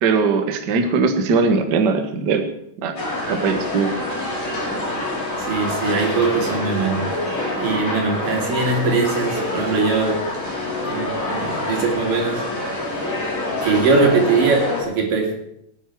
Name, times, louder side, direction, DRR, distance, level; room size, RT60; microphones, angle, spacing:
voice 1, 0.0-2.5 2.8-2.9 3.3-3.9, right 4 dB, 55° right, 6 dB, 1.2 m, -20 dB
sound 1, 3.0-14.8, left 1 dB, 25° left, 3.6 m, -26 dB
voice 2, 5.4-7.0 7.6-10.3 10.8-12.4 13.6-15.3, right 4 dB, 75° right, 1 dB, 4.3 m, -21 dB
19.0 x 10.0 x 4.7 m, 0.75 s
omnidirectional pair, 3.9 m